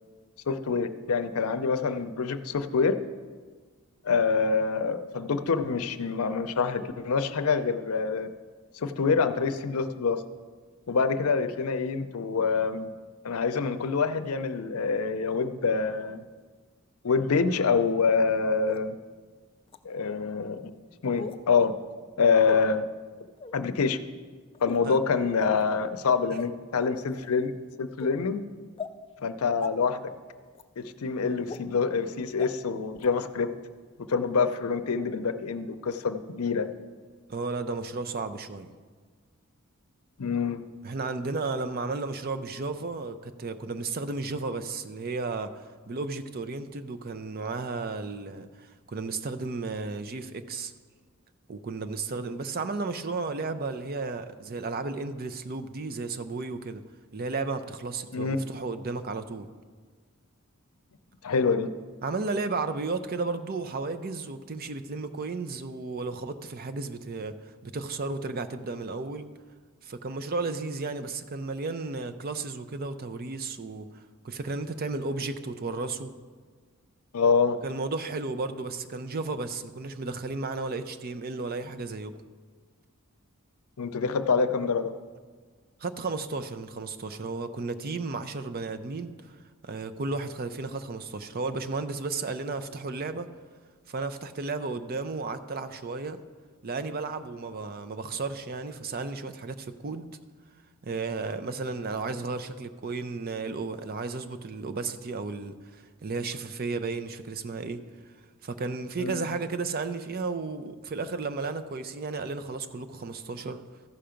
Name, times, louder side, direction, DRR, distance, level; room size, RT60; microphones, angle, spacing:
voice 1, 0.5-3.0 4.0-8.3 8.7-10.2 10.9-12.9 13.2-16.2 17.0-19.0 19.8-20.7 21.0-21.7 22.2-22.9 23.5-24.0 24.6-28.4 29.2-30.1 30.8-33.5 34.1-36.7 40.2-40.6 58.1-58.4 61.2-61.7 77.1-77.6 83.8-84.9 109.0-109.3, left 5 dB, 80° left, 10 dB, 0.6 m, -26 dB
sound 1, 18.7-18.8 19.7-19.8 21.2-21.4 22.4-22.6 23.4-23.6 24.5-24.8 25.4-25.6 26.4-26.5 27.1-27.3 28.0-28.1 28.8-28.9 29.6-29.7 30.5-30.6 31.5-31.6 32.4-32.5 33.0-33.1, left 4 dB, 25° left, 0.4 m, -37 dB
voice 2, 37.3-38.7 40.8-45.5 45.9-50.7 51.5-56.8 57.1-59.5 62.0-67.3 67.6-69.3 69.8-76.1 77.6-82.1 85.8-89.4 89.6-93.3 93.9-96.2 96.6-100.1 100.8-107.8 108.4-113.6, right 3 dB, 45° right, 10 dB, 0.5 m, -33 dB
14.0 x 5.7 x 5.1 m, 1.5 s
head